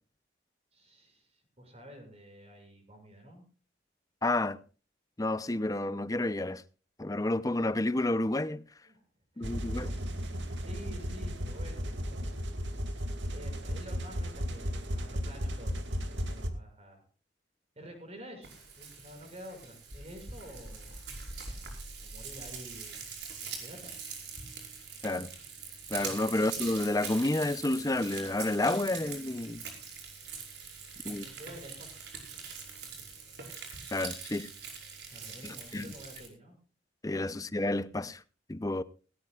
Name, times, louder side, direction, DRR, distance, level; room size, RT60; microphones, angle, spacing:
voice 1, 0.7-3.4 8.8-9.0 9.3-12.5 13.3-17.0 17.7-21.0 22.0-23.1 23.4-24.0 31.1-32.0 32.8-33.1 35.1-36.6, equal, 35° right, 6.7 m, -50 dB
voice 2, 4.2-4.6 5.2-6.6 7.0-8.6 9.4-9.9 25.0-25.3 25.9-29.6 31.0-31.3 33.9-34.5 35.4-35.8 37.0-38.2 38.5-38.8, left 2 dB, 20° left, 0.6 m, -30 dB
sound 1, 9.4-16.5, equal, 80° right, 2.4 m, -35 dB
Frying (food), 18.4-36.3, right 5 dB, 65° right, 5.5 m, -43 dB
19.0 x 17.5 x 2.4 m
head